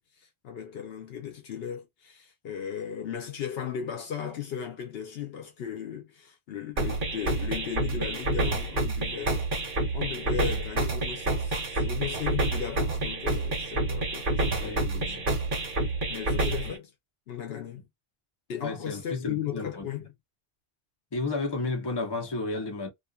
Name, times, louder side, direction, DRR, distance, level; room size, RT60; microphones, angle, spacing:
voice 1, 0.0-15.2 16.1-16.9 17.3-17.9 18.5-20.1, left 8 dB, 75° left, 0.8 m, -36 dB
sound 1, 6.8-16.8, right 2 dB, 55° right, 1.0 m, -28 dB
voice 2, 14.6-15.3 16.6-16.7 18.5-19.9 21.1-22.9, left 3 dB, 25° left, 0.7 m, -32 dB
2.5 x 2.4 x 2.2 m
omnidirectional pair, 1.0 m